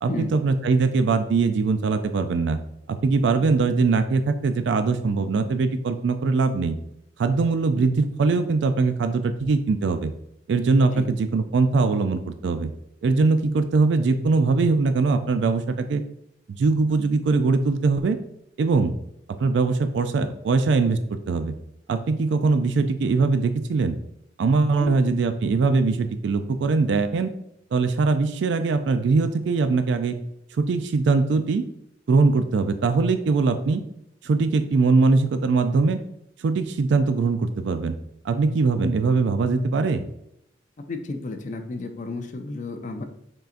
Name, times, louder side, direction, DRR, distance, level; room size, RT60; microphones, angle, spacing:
voice 1, 0.0-2.6 2.9-6.8 7.2-10.1 10.5-12.7 13.0-16.0 16.5-18.2 18.6-18.9 19.3-21.5 21.9-24.0 24.4-27.3 27.7-30.2 30.6-31.6 32.1-33.8 34.2-36.0 36.4-37.9 38.2-40.0, right 4 dB, 70° right, 9 dB, 0.3 m, -21 dB
voice 2, 40.9-43.0, left 3 dB, 45° left, 5 dB, 0.5 m, -32 dB
5.5 x 3.8 x 2.5 m, 0.80 s
head